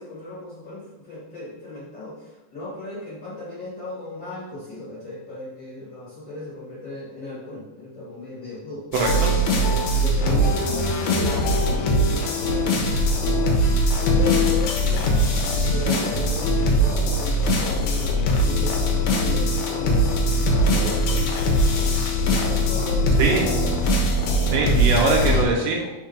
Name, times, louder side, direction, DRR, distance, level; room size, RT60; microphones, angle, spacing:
voice 1, 0.0-8.8 9.9-13.6 14.0-15.2 15.7-20.1 20.7-21.3 22.2-23.7, left 1 dB, 40° left, -9 dB, 2.1 m, -36 dB
sound 1, 8.9-25.5, equal, 65° left, 2.0 m, -21 dB
voice 2, 8.9-9.3 23.2-23.5 24.5-25.9, right 4 dB, 75° right, 0 dB, 2.4 m, -22 dB
5.9 x 3.5 x 5.2 m, 1.0 s
omnidirectional pair, 4.0 m